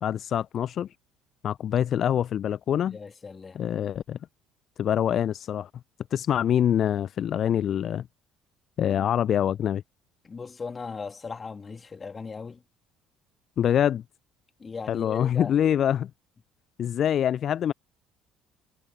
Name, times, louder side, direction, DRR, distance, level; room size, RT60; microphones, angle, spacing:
voice 1, 0.0-0.9 1.4-3.0 3.5-4.2 4.8-5.7 6.1-8.1 8.8-9.8 13.6-14.0 14.9-16.1 16.8-17.7, left 10 dB, 50° left, 0.6 m, -25 dB
voice 2, 2.9-3.6 10.2-12.6 14.6-15.5, left 5 dB, 30° left, 2.9 m, -38 dB
figure-of-eight pair, 55°, 0 cm